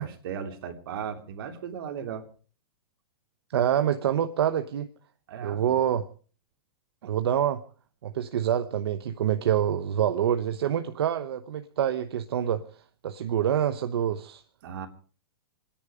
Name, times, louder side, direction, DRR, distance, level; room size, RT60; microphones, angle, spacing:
voice 1, 0.0-2.2 5.3-5.8 14.6-14.9, right 7 dB, 65° right, 6 dB, 3.2 m, -36 dB
voice 2, 3.5-4.9 5.4-6.1 7.0-7.6 8.0-12.6 13.0-14.4, right 10 dB, 80° right, 10 dB, 1.0 m, -26 dB
27.0 x 10.5 x 5.0 m, 0.40 s
hypercardioid pair, 150°, 13 cm